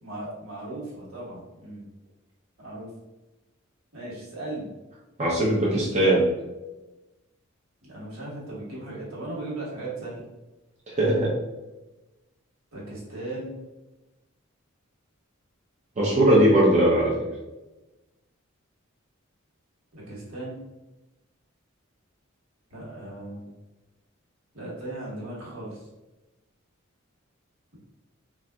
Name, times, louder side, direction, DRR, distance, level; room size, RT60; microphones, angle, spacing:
voice 1, 0.0-1.9 2.6-2.9 3.9-4.7 7.8-10.2 12.7-13.6 19.9-20.6 22.7-23.5 24.5-25.9, right 2 dB, 75° right, -7 dB, 1.4 m, -37 dB
voice 2, 5.2-6.3 10.9-11.3 16.0-17.1, right 1 dB, 30° right, -6 dB, 0.6 m, -20 dB
4.1 x 2.4 x 2.3 m, 1.1 s
head